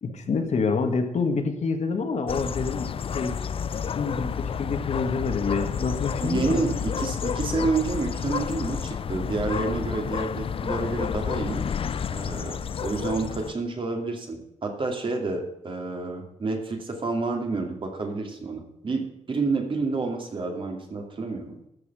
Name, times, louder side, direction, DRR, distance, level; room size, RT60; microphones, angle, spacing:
voice 1, 0.0-3.4 3.9-6.6 7.6-7.7, left 4 dB, 65° left, 5 dB, 1.8 m, -27 dB
sound 1, 2.3-13.5, left 7 dB, 50° left, 0.4 m, -30 dB
voice 2, 6.2-11.7 12.1-21.6, right 3 dB, 45° right, 3 dB, 2.4 m, -29 dB
13.0 x 7.0 x 6.7 m, 0.85 s
wide cardioid pair, 175°, 12 cm